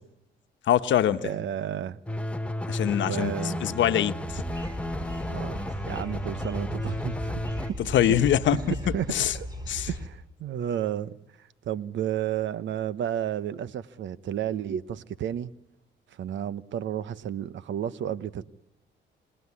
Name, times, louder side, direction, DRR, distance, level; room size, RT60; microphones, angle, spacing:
voice 1, 0.7-1.3 2.7-4.4 7.9-8.6 9.1-9.3 9.7-9.9, left 11 dB, 70° left, 10 dB, 1.1 m, -24 dB
voice 2, 1.2-2.0 3.0-3.6 5.3-7.4 7.7-7.8 8.5-9.1 9.3-9.5 9.8-15.5 16.1-18.4, right 10 dB, 70° right, 16 dB, 1.0 m, -32 dB
sound 1, 2.1-7.7, left 1 dB, 5° left, 1.2 m, -33 dB
sound 2, 4.3-10.1, equal, 20° right, 5.1 m, -37 dB
26.5 x 19.0 x 9.8 m, 0.92 s
cardioid pair, 90°, 20 cm